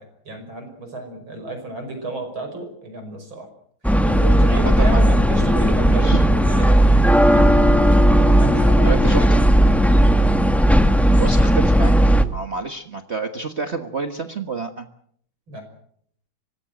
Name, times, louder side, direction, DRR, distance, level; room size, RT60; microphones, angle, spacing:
voice 1, 0.0-3.5 4.0-6.9 7.3-7.5 8.4-9.3 15.5-15.7, right 1 dB, 80° right, 6 dB, 6.3 m, -31 dB
sound 1, 3.8-12.2, equal, ahead, 1.0 m, -15 dB
voice 2, 5.9-6.2 8.8-9.2 11.2-11.9 12.3-14.9, right 4 dB, 35° right, 6 dB, 1.5 m, -28 dB
25.0 x 18.5 x 7.9 m, 0.65 s
omnidirectional pair, 2.2 m